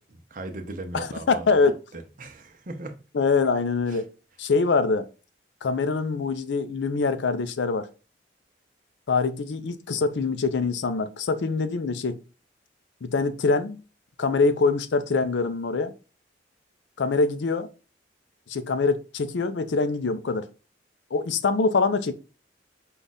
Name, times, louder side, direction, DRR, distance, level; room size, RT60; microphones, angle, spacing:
voice 1, 0.0-1.6 1.9-3.0 3.9-4.0, right 2 dB, 45° right, 0.7 m, -38 dB
voice 2, 0.9-1.7 3.1-4.1 4.4-5.1 5.6-7.9 9.1-12.2 13.0-13.8 14.2-15.9 17.0-17.7 18.5-20.4 21.1-22.1, left 4 dB, 85° left, 0.5 m, -24 dB
5.1 x 2.4 x 4.0 m
head